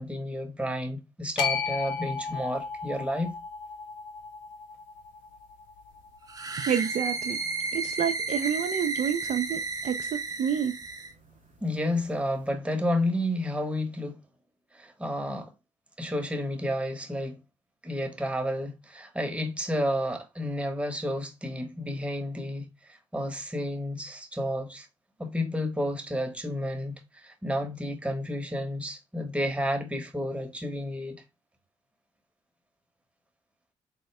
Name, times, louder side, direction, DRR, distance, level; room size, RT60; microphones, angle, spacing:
voice 1, 0.0-3.3 11.6-14.2 14.7-15.5 16.0-17.4 17.8-24.9 25.2-31.2, left 1 dB, 10° right, 1.0 m, -31 dB
sound 1, 1.4-7.6, left 6 dB, 80° left, 0.7 m, -36 dB
sound 2, 6.3-11.1, right 3 dB, 25° right, 0.7 m, -32 dB
voice 2, 6.6-7.4 7.7-10.7, right 8 dB, 55° right, 0.5 m, -29 dB
4.2 x 2.1 x 3.2 m
hypercardioid pair, 45°, 14 cm